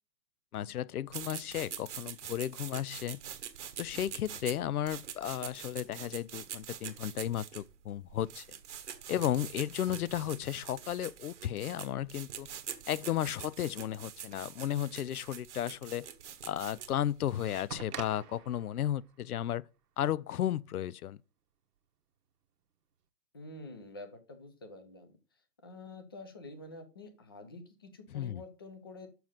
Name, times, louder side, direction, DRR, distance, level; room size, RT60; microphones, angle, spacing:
voice 1, 0.5-3.2 3.8-8.5 9.1-12.5 12.9-16.1 16.4-19.6 20.0-21.2 28.1-28.4, left 11 dB, 65° left, 0.6 m, -34 dB
sound 1, 1.1-17.8, right 9 dB, 45° right, 1.0 m, -45 dB
sound 2, 17.7-20.6 21.8-21.9, right 8 dB, 70° right, 1.1 m, -47 dB
voice 2, 23.3-25.2 25.6-29.1, left 2 dB, 15° left, 0.6 m, -48 dB
7.0 x 6.1 x 5.5 m
hypercardioid pair, 160°, 48 cm